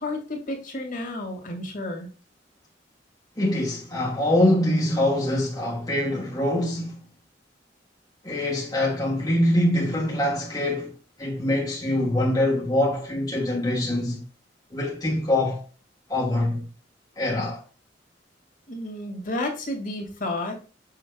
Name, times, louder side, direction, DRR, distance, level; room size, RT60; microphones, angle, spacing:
voice 1, 0.0-2.1 18.7-20.6, left 2 dB, 50° left, 2.0 m, -31 dB
voice 2, 3.4-7.0 8.2-10.9 11.2-14.2 14.7-15.6 16.1-16.6 17.2-17.6, left 1 dB, 20° left, 1.4 m, -24 dB
6.8 x 5.9 x 2.4 m
head